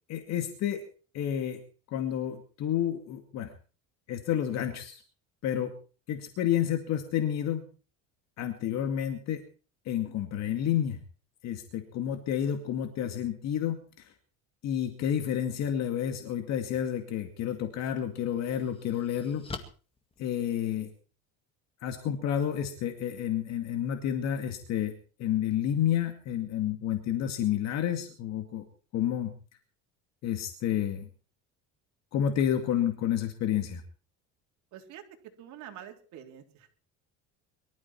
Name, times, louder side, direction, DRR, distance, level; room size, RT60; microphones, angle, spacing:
voice 1, 0.1-0.8 1.1-1.6 1.9-3.5 4.1-5.0 5.4-5.7 6.1-7.7 8.4-9.4 9.9-11.0 11.4-14.1 14.6-19.5 20.2-20.9 21.8-24.9 25.2-28.6 28.9-29.3 30.2-31.1 32.1-33.8, left 10 dB, 55° left, 6 dB, 2.2 m, -30 dB
sound 1, 17.3-17.4 18.0-21.0, left 4 dB, 15° left, 2.0 m, -46 dB
voice 2, 34.7-35.0 35.4-36.7, right 10 dB, 65° right, 3 dB, 3.8 m, -46 dB
23.5 x 13.5 x 4.5 m, 0.39 s
cardioid pair, 160°, 32 cm